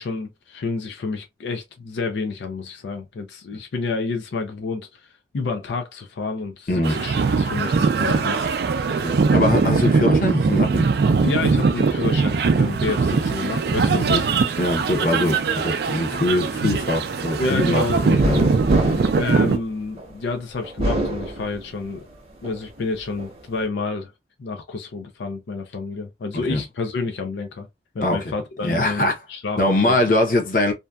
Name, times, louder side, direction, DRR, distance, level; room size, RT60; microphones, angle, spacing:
voice 1, 0.0-5.0 5.3-8.5 11.2-14.3 17.4-18.1 19.1-22.1 22.4-24.1 24.4-27.7 27.9-30.0, left 3 dB, 85° left, 0.4 m, -29 dB
voice 2, 6.7-7.0 8.9-10.9 14.0-14.2 14.6-18.8 26.3-26.6 28.0-28.3 28.6-29.2 29.6-30.7, left 1 dB, 50° left, 0.7 m, -23 dB
sound 1, 6.8-19.6, right 4 dB, 65° right, 0.3 m, -21 dB
sound 2, 18.2-20.1 20.6-22.0 22.4-23.3, equal, 35° right, 0.8 m, -26 dB
2.6 x 2.2 x 2.3 m
head